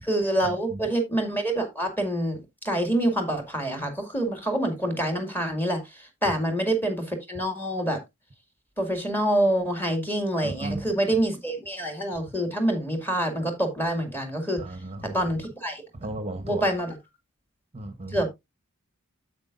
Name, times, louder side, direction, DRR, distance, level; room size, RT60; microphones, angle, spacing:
voice 1, 0.0-8.0 8.8-14.6 15.0-15.8 16.4-17.0 18.1-18.3, right 1 dB, 10° left, 2.2 m, -26 dB
voice 2, 10.4-10.8 14.6-15.1 16.0-16.6 17.7-18.2, right 1 dB, 30° right, 0.9 m, -34 dB
9.4 x 7.8 x 2.5 m
head